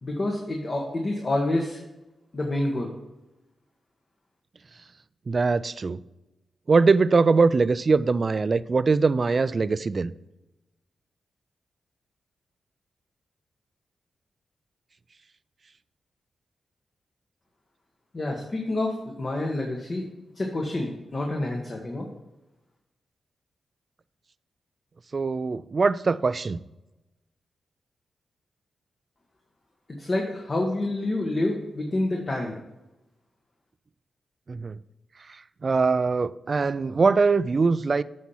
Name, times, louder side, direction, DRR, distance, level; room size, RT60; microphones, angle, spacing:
voice 1, 0.0-1.8 2.3-2.9 18.1-20.0 20.3-22.1 30.0-32.6, left 2 dB, 40° left, 1 dB, 1.3 m, -28 dB
voice 2, 5.3-6.0 6.7-10.1 25.1-26.6 34.5-34.8 35.6-38.0, right 4 dB, 45° right, 16 dB, 0.3 m, -22 dB
8.4 x 4.2 x 5.6 m, 1.0 s
cardioid pair, 60°, 0 cm